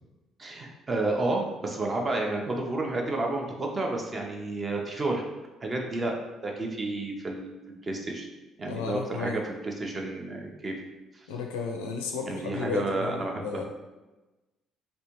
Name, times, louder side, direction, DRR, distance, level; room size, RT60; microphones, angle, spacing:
voice 1, 0.4-5.2 5.6-6.2 6.4-7.6 7.8-8.2 8.6-10.7 12.2-13.6, right 2 dB, 30° right, 1 dB, 0.6 m, -31 dB
voice 2, 8.6-9.4 11.3-13.6, left 5 dB, 70° left, 2 dB, 0.4 m, -33 dB
3.2 x 2.6 x 3.0 m, 1.1 s
figure-of-eight pair, 50°, 0 cm